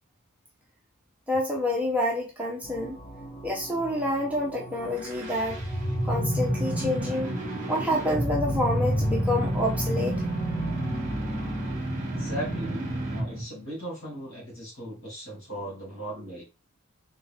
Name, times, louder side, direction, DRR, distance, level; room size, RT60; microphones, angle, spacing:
voice 1, 1.3-3.0 3.4-5.6 6.0-7.3 7.7-10.2, left 1 dB, 5° right, -2 dB, 0.7 m, -28 dB
sound 1, 2.6-11.8, equal, 30° left, 0.8 m, -40 dB
sound 2, 4.8-13.5, right 1 dB, 35° right, 1.5 m, -29 dB
voice 2, 12.0-16.4, equal, 65° left, -3 dB, 2.2 m, -38 dB
3.7 x 2.6 x 3.4 m, 0.27 s
head